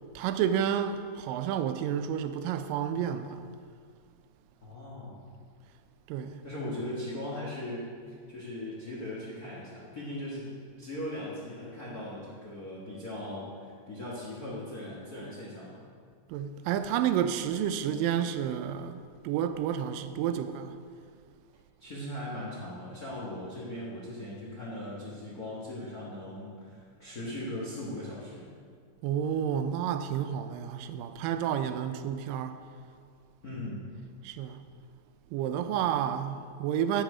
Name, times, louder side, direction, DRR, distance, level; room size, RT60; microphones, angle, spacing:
voice 1, 0.2-3.4 6.1-6.4 16.3-20.8 29.0-32.6 34.2-34.6 35.3-37.0, right 9 dB, 85° right, 2.2 m, -30 dB
voice 2, 4.6-5.2 6.4-15.8 21.8-28.4 33.4-33.8, left 1 dB, 45° left, 1.2 m, -39 dB
9.1 x 8.8 x 4.9 m
omnidirectional pair, 3.9 m